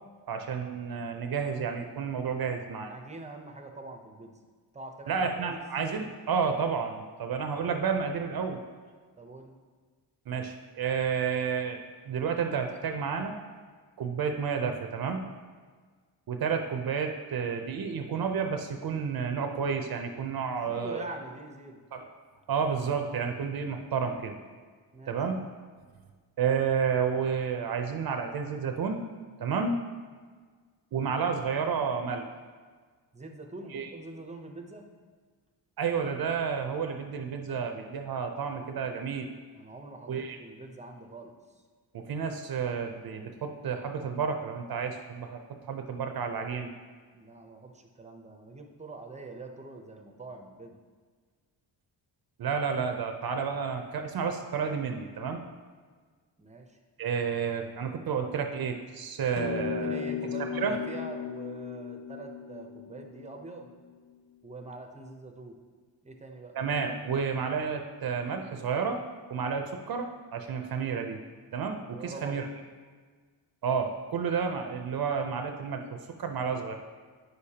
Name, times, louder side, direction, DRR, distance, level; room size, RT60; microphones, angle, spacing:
voice 1, 0.3-2.9 5.1-8.6 10.3-11.8 12.1-13.3 14.0-15.2 16.3-21.1 21.9-22.1 22.5-24.4 25.1-25.4 26.4-29.0 29.4-29.8 30.9-32.2 33.7-33.9 35.8-39.3 40.1-40.4 41.9-45.4 45.7-46.7 52.4-55.4 57.0-60.1 60.5-60.8 66.5-69.0 69.3-71.2 71.5-72.5 73.6-76.7, right 6 dB, 55° right, 5 dB, 0.6 m, -31 dB
voice 2, 2.8-4.3 4.7-5.6 9.2-9.5 20.6-21.8 24.9-25.2 33.1-34.9 39.5-41.3 47.1-50.8 56.4-56.8 59.6-63.7 64.4-65.5 66.0-66.6 71.9-72.5, right 3 dB, 15° right, 3 dB, 0.6 m, -44 dB
sound 1, 59.4-63.9, left 8 dB, 40° left, 0.6 m, -36 dB
9.4 x 6.5 x 2.8 m, 1.5 s
cardioid pair, 120°, 44 cm